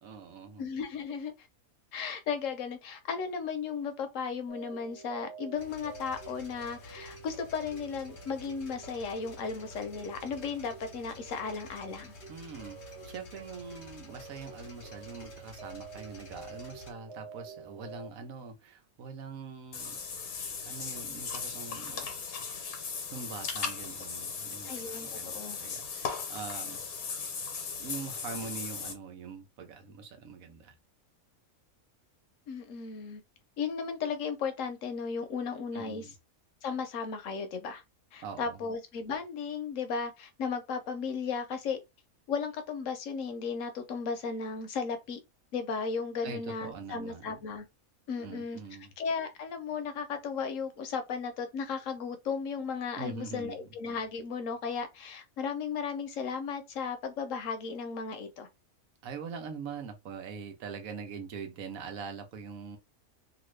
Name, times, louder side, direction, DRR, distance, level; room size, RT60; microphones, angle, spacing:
voice 1, 0.0-0.6 12.3-12.8 13.0-20.0 20.7-22.1 23.1-24.7 25.0-26.8 27.8-30.7 35.7-36.1 38.2-38.7 46.2-47.4 48.1-48.9 53.0-53.6 59.0-62.8, right 5 dB, 75° right, 1.2 m, -43 dB
voice 2, 0.6-1.5 1.9-12.1 24.6-25.6 32.5-33.2 33.6-36.0 36.6-37.8 38.1-41.8 42.3-45.2 45.5-47.7 48.1-48.6 49.0-58.5, left 5 dB, 65° left, 1.0 m, -35 dB
sound 1, 4.5-18.1, right 5 dB, 50° right, 1.2 m, -49 dB
sound 2, 5.6-16.9, left 2 dB, 45° left, 0.9 m, -51 dB
Water / Bathtub (filling or washing), 19.7-28.9, left 5 dB, 90° left, 1.3 m, -37 dB
2.9 x 2.5 x 3.1 m
omnidirectional pair, 1.5 m